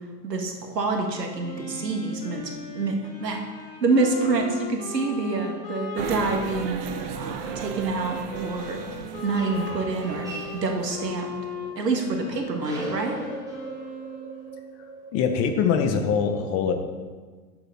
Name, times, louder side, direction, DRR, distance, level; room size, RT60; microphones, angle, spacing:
voice 1, 0.2-3.0 3.2-3.4 3.8-6.9 7.1-8.8 9.2-10.3 10.6-11.3 11.8-13.2, right 3 dB, 80° right, 3 dB, 1.9 m, -27 dB
Wind instrument woodwind instrument, 1.3-14.7, left 3 dB, 80° left, 2.2 m, -38 dB
sound 1, 6.0-11.0, right 9 dB, 35° right, 0.7 m, -36 dB
sound 2, 8.6-15.9, right 2 dB, 5° right, 2.0 m, -40 dB
voice 2, 15.1-16.7, left 6 dB, 30° left, 7 dB, 0.9 m, -23 dB
8.7 x 6.8 x 5.6 m, 1.4 s
hypercardioid pair, 105°, 48 cm